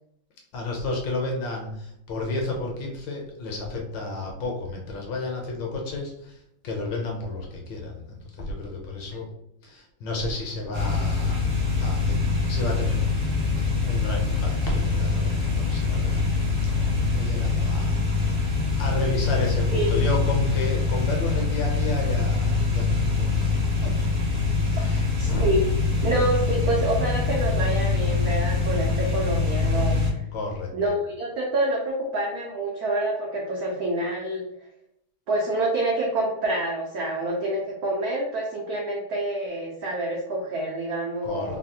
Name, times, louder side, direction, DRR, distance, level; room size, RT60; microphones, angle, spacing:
voice 1, 0.5-6.4 6.6-9.2 9.6-11.4 11.8-16.2 16.6-17.9 18.8-23.4 23.8-23.9 24.7-25.5 30.3-30.7 41.2-41.6, left 2 dB, 70° left, 0 dB, 1.2 m, -31 dB
sound 1, 10.7-30.1, left 4 dB, 50° right, 0.5 m, -24 dB
voice 2, 25.2-25.7 26.0-30.2 30.7-34.5 35.3-41.6, right 1 dB, 85° right, -1 dB, 0.8 m, -27 dB
3.3 x 2.3 x 2.7 m, 0.77 s
omnidirectional pair, 2.3 m